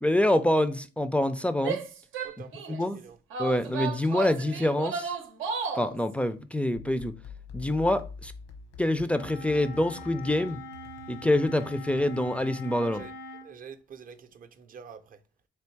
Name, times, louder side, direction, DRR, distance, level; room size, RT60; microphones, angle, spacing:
voice 1, 0.0-1.8 2.7-3.0 3.4-5.1 5.7-7.2 7.5-8.3 8.8-10.6 11.1-13.1, left 1 dB, 5° left, 0.3 m, -26 dB
Female speech woman speaking / Yell, 1.6-2.8 3.3-5.9, right 6 dB, 90° right, 0.7 m, -34 dB
voice 2, 2.2-3.2 12.8-13.1 13.4-15.2, right 6 dB, 45° right, 0.5 m, -47 dB
sound 1, 6.7-13.1, left 4 dB, 90° left, 1.0 m, -47 dB
Wind instrument woodwind instrument, 9.1-13.5, left 1 dB, 75° left, 0.6 m, -43 dB
3.5 x 2.8 x 4.4 m
cardioid pair, 90°, 20 cm